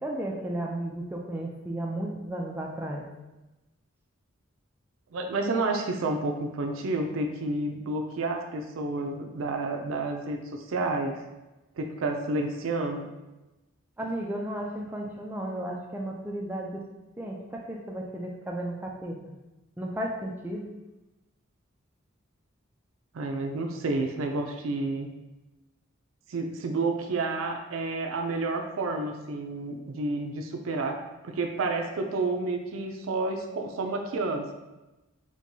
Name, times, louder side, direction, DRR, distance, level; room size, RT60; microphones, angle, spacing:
voice 1, 0.0-3.1 9.0-9.1 14.0-16.8 17.2-19.2 19.8-20.6, right 1 dB, 10° right, -1 dB, 0.3 m, -34 dB
voice 2, 5.1-11.2 11.8-13.1 23.1-25.1 26.3-34.5, right 3 dB, 75° right, 4 dB, 0.4 m, -30 dB
4.5 x 2.2 x 2.7 m, 1.0 s
head